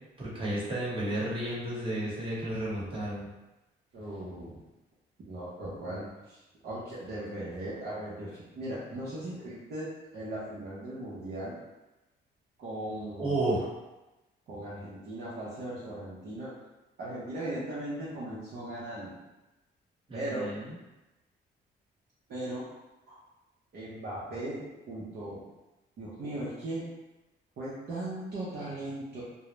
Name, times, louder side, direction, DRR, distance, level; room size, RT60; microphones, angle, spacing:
voice 1, 0.2-3.3 13.2-13.7 20.1-20.7, right 1 dB, 25° right, -8 dB, 1.1 m, -32 dB
voice 2, 3.9-4.6 5.3-11.6 12.6-13.4 14.5-16.5 17.0-19.2 20.1-20.5 22.3-22.8 23.1-23.2 23.7-25.4 26.0-26.9 27.6-29.2, right 1 dB, 55° right, -8 dB, 0.7 m, -38 dB
2.2 x 2.0 x 3.0 m, 1.0 s
cardioid pair, 90°, 20 cm